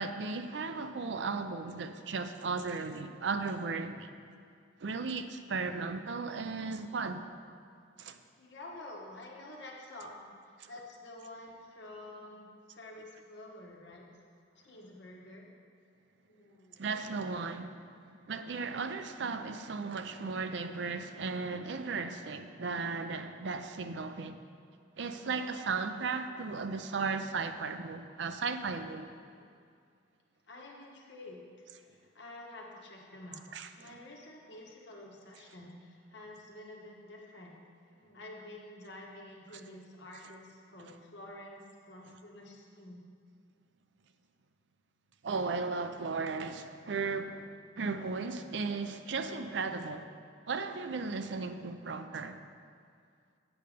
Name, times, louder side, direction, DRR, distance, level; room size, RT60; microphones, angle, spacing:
voice 1, 0.0-4.1 4.8-7.3 8.0-8.2 10.6-10.7 16.8-18.0 18.3-24.4 25.0-29.1 33.5-33.9 45.2-50.1 50.5-52.4, right 4 dB, 70° right, 0.5 m, -36 dB
voice 2, 8.4-14.1 14.5-15.5 16.3-16.8 29.4-29.5 30.5-37.6 37.8-43.0, left 1 dB, 65° left, 1.4 m, -49 dB
8.6 x 6.7 x 5.0 m
head